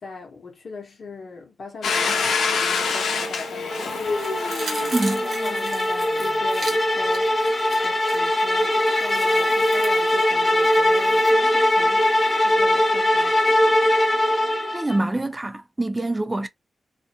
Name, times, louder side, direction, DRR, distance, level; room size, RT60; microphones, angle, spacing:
voice 1, 0.0-4.5 4.8-7.3 7.8-13.7, left 4 dB, 55° left, 0.9 m, -40 dB
Domestic sounds home sounds, 1.8-6.5, left 5 dB, 85° left, 0.7 m, -26 dB
sound 1, 3.7-15.0, left 1 dB, 20° left, 0.7 m, -21 dB
sound 2, 3.8-11.3 11.7-11.8, right 3 dB, 55° right, 1.0 m, -39 dB
voice 2, 4.9-5.2 14.7-16.5, right 2 dB, 15° right, 0.3 m, -25 dB
2.4 x 2.1 x 2.8 m
wide cardioid pair, 115°, 0 cm